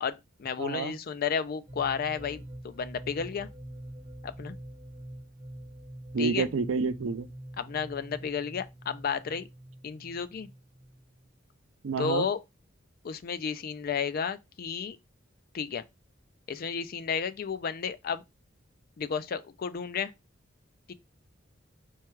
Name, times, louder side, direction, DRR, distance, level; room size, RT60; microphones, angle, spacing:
voice 1, 0.0-3.5 4.2-4.6 6.2-6.5 7.6-9.5 9.8-10.5 12.0-12.4 13.0-15.0 15.5-15.8 16.5-18.2 19.0-20.1 20.9-21.0, left 6 dB, 50° left, 0.4 m, -32 dB
voice 2, 0.6-1.0 6.1-7.3 11.8-12.3, right 5 dB, 85° right, 0.5 m, -29 dB
sound 1, 1.7-11.3, right 1 dB, 30° right, 1.3 m, -45 dB
4.6 x 2.3 x 4.5 m
head